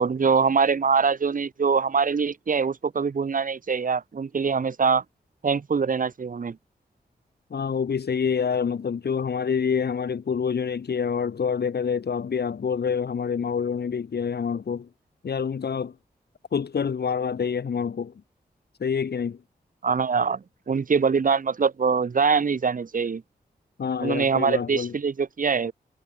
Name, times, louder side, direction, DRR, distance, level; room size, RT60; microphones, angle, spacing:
voice 1, 0.0-5.0 5.4-6.6 19.8-23.2 24.0-25.7, right 5 dB, 55° right, 0.9 m, -23 dB
voice 2, 7.5-14.9 15.2-15.9 16.5-18.1 18.8-19.4 23.8-24.9, left 6 dB, 70° left, 1.2 m, -27 dB
cardioid pair, 65°, 17 cm